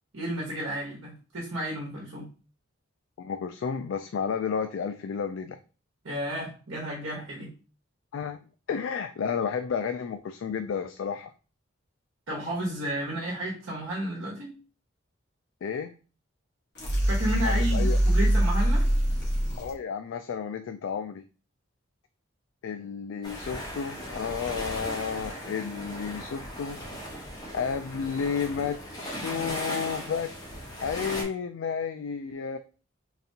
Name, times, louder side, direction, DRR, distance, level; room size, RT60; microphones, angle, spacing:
voice 1, 0.1-2.3 6.0-7.5 12.3-14.5 17.1-18.8, equal, 75° right, -3 dB, 1.2 m, -32 dB
voice 2, 3.2-5.6 8.1-8.4 8.7-11.3 15.6-16.0 17.4-18.0 19.6-21.2 22.6-26.8 27.5-30.3 30.8-32.6, left 6 dB, 70° left, 8 dB, 0.3 m, -32 dB
sound 1, 16.8-19.7, right 1 dB, 55° left, 1.4 m, -24 dB
sound 2, 23.2-31.2, equal, 20° left, 1.2 m, -38 dB
4.0 x 3.4 x 2.8 m, 0.35 s
head